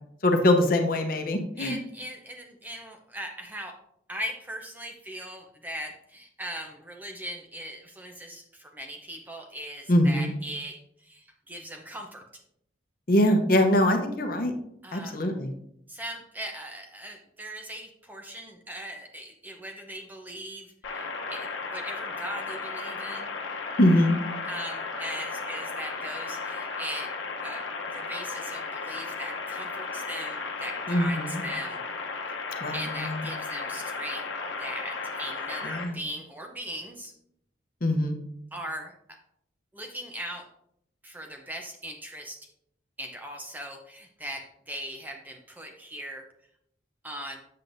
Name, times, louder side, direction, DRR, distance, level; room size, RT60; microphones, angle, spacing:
voice 1, 0.2-1.8 9.9-10.3 13.1-14.5 14.9-15.5 23.8-24.1 30.9-31.4 32.6-33.2 35.6-35.9 37.8-38.2, left 1 dB, 50° left, 4 dB, 0.8 m, -23 dB
voice 2, 1.6-3.8 4.1-12.2 14.8-15.3 15.9-23.3 24.5-27.7 27.9-31.8 32.7-34.3 34.6-37.1 38.5-39.2 39.7-40.5 41.0-42.5 43.0-46.3 47.0-47.4, equal, 10° right, 2 dB, 0.6 m, -39 dB
sound 1, 20.8-35.8, left 4 dB, 80° left, 0.9 m, -35 dB
7.6 x 7.5 x 2.6 m, 0.74 s
head